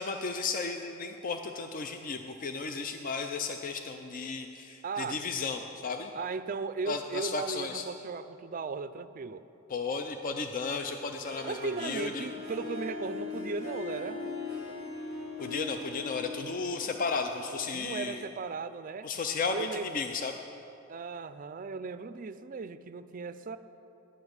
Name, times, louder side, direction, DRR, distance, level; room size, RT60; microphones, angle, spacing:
voice 1, 0.0-6.1 6.9-7.9 9.7-12.3 15.4-18.3 19.0-20.4, left 4 dB, 40° left, 6 dB, 0.5 m, -34 dB
voice 2, 4.8-5.2 6.1-9.4 11.4-14.2 17.7-19.1 19.5-19.9 20.9-23.6, right 4 dB, 40° right, 12 dB, 0.4 m, -36 dB
Harp, 11.2-18.1, left 3 dB, 85° left, 3.2 m, -40 dB
11.5 x 8.9 x 6.4 m, 3.0 s
head